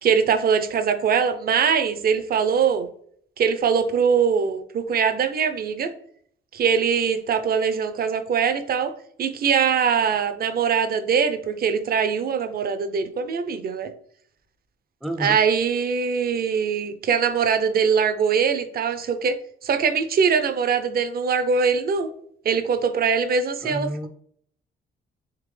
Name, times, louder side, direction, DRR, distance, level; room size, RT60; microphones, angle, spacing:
voice 1, 0.0-2.9 3.4-5.9 6.5-8.9 9.2-13.9 15.2-19.4 19.6-22.1 22.4-24.1, right 6 dB, 50° right, 10 dB, 0.6 m, -22 dB
voice 2, 15.0-15.4 23.6-24.1, equal, ahead, 5 dB, 0.4 m, -29 dB
3.6 x 3.3 x 3.2 m, 0.62 s
cardioid pair, 90°, 20 cm